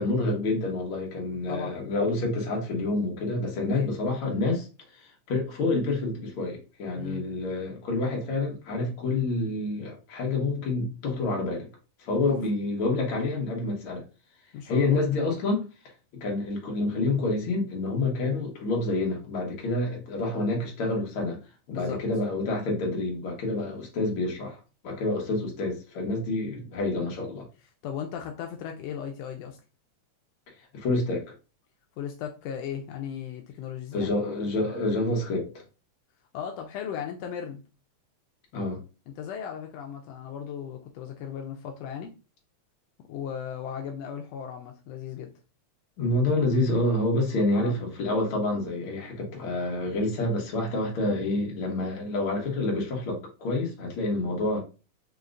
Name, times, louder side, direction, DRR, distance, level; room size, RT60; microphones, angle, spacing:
voice 1, 0.0-4.7 5.0-11.7 12.0-14.0 14.7-15.7 16.1-21.4 21.7-24.6 24.8-27.4 30.7-31.3 33.9-35.5 38.5-38.8 46.0-54.6, left 2 dB, 55° left, 1.6 m, -28 dB
voice 2, 6.9-7.3 12.3-12.4 14.5-15.0 21.7-22.0 27.8-29.6 32.0-34.1 36.3-37.6 39.1-42.1 43.1-45.3 47.6-47.8, left 8 dB, 85° left, 1.4 m, -36 dB
5.1 x 2.8 x 2.4 m
omnidirectional pair, 3.5 m